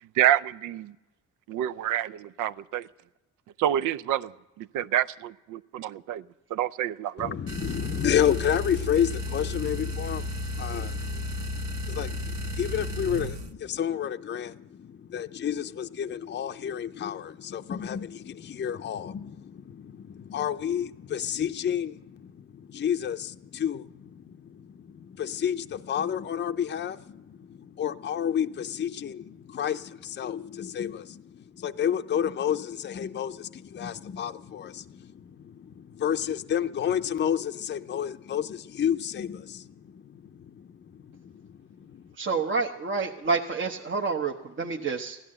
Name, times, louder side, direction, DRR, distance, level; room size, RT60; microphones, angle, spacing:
voice 1, 0.0-1.0 1.5-2.9 3.6-4.3 4.6-6.2 6.5-7.4, right 11 dB, 85° right, 0.5 m, -28 dB
voice 2, 7.2-42.1, left 9 dB, 35° left, 0.6 m, -31 dB
sound 1, 7.5-13.5, left 2 dB, 65° right, 1.1 m, -33 dB
voice 3, 42.2-45.2, right 4 dB, 40° right, 1.0 m, -28 dB
16.0 x 11.5 x 7.7 m
cardioid pair, 90°, 30 cm